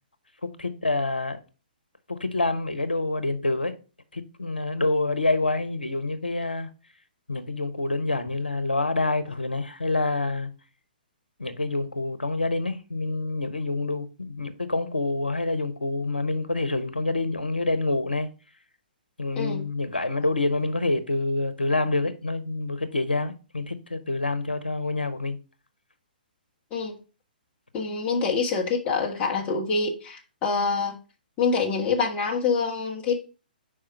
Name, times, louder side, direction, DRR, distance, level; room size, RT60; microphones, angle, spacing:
voice 1, 0.4-1.4 2.1-3.7 4.1-6.7 7.3-10.5 11.4-18.3 19.2-25.4, left 2 dB, 85° left, 0.9 m, -27 dB
voice 2, 27.7-31.0 31.4-33.2, left 4 dB, 25° left, 1.3 m, -26 dB
5.0 x 4.9 x 4.5 m
figure-of-eight pair, 125°, 5 cm